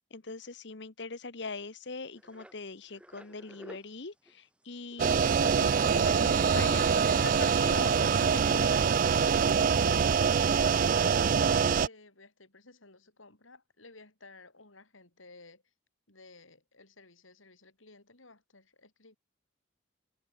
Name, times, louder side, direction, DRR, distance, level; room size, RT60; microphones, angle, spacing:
voice 1, 0.1-10.2, left 3 dB, 60° left, 1.2 m, -41 dB
sound 1, 2.1-3.9 4.3-4.4 4.6-4.7 4.9-5.9 6.3-7.5, equal, 5° right, 1.7 m, -51 dB
sound 2, 5.0-11.9, right 6 dB, 45° right, 0.3 m, -25 dB
voice 2, 9.1-9.6 10.6-15.7 16.1-19.2, left 3 dB, 85° left, 5.1 m, -54 dB
head